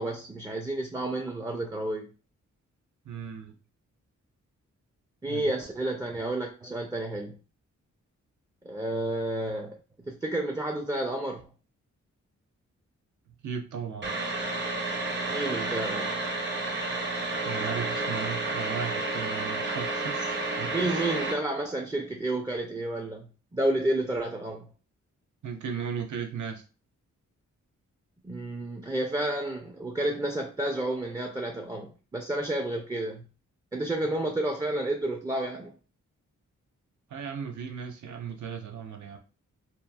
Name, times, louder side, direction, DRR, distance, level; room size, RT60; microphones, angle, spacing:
voice 1, 0.0-2.1 5.2-7.4 8.6-9.8 10.1-11.4 15.3-16.1 20.7-24.7 28.2-33.2 33.7-35.7, right 1 dB, 15° right, 0.4 m, -30 dB
voice 2, 3.0-3.6 5.3-5.5 13.4-14.1 17.4-21.1 25.4-26.6 37.1-39.2, right 7 dB, 70° right, 0.6 m, -36 dB
sound 1, 14.0-21.3, right 2 dB, 40° right, 0.7 m, -31 dB
2.9 x 2.3 x 2.2 m
cardioid pair, 70°, 30 cm